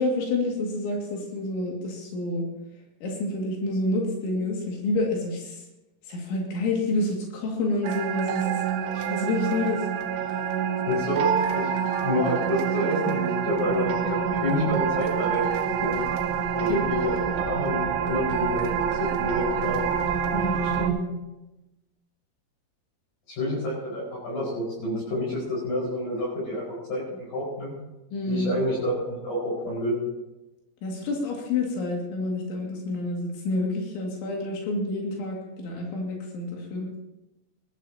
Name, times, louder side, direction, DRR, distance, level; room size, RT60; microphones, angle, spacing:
voice 1, 0.0-2.4 3.0-5.6 6.1-8.6 8.9-9.8 16.7-16.8 20.3-21.1 28.1-28.5 30.8-36.9, left 2 dB, 90° left, -1 dB, 4.7 m, -28 dB
sound 1, 7.8-20.9, right 8 dB, 80° right, 3.1 m, -27 dB
voice 2, 10.9-11.7 12.0-16.0 16.5-19.8 23.4-26.6 26.9-27.7 28.3-30.0, left 1 dB, 50° left, -6 dB, 6.8 m, -28 dB
21.0 x 14.5 x 2.9 m, 0.99 s
omnidirectional pair, 5.2 m